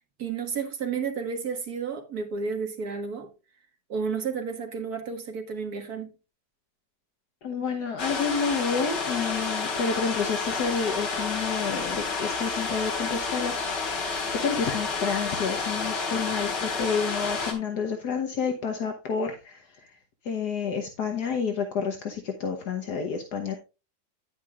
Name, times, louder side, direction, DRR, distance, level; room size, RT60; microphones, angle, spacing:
voice 1, 0.2-3.3 3.9-6.1, right 5 dB, 60° right, 2.1 m, -31 dB
voice 2, 7.4-13.9 14.3-19.9 20.2-23.6, left 5 dB, 70° left, 1.7 m, -29 dB
sound 1, 8.0-17.5, left 4 dB, 90° left, 2.5 m, -30 dB
10.5 x 9.0 x 2.5 m
omnidirectional pair, 1.8 m